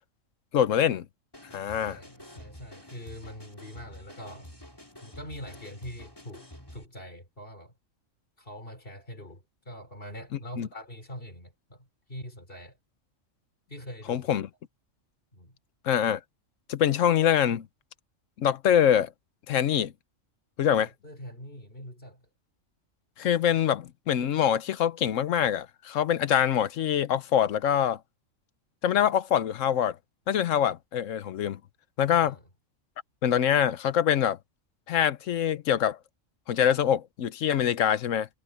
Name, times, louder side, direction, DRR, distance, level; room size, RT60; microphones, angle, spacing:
voice 1, 0.5-1.1 1.5-2.0 10.6-10.7 14.1-14.5 15.8-16.2 16.7-17.7 18.4-19.1 19.5-19.9 20.6-20.9 23.2-28.0 28.8-30.0 30.3-31.6 32.0-32.4 33.2-34.4 34.9-36.0 36.5-38.3, left 9 dB, 75° left, 1.2 m, -24 dB
sound 1, 1.3-6.9, left 1 dB, 15° left, 4.7 m, -49 dB
voice 2, 1.8-4.6 5.0-7.8 8.4-12.8 13.7-14.4 15.3-15.6 20.6-22.2 32.2-32.4, equal, 45° left, 5.3 m, -44 dB
omnidirectional pair, 1.4 m